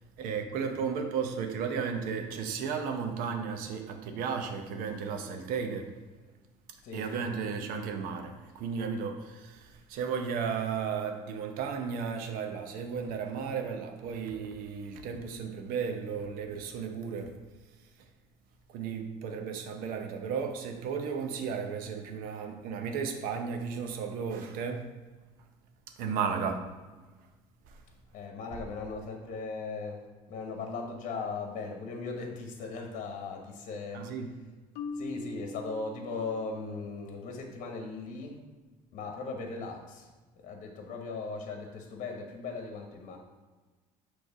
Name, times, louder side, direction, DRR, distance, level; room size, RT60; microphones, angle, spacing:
voice 1, 0.2-5.9 6.9-17.4 18.7-24.9 26.0-27.0 27.7-27.8 33.9-34.3, right 6 dB, 70° right, 0.8 m, -34 dB
voice 2, 6.8-7.5 28.1-30.0 30.3-34.1 34.9-38.4 38.9-40.1 40.3-43.2, left 4 dB, 55° left, 1.1 m, -38 dB
Marimba xylophone, 34.7-36.8, left 2 dB, 75° left, 0.6 m, -41 dB
6.2 x 3.3 x 5.0 m
supercardioid pair, 85°, 15 cm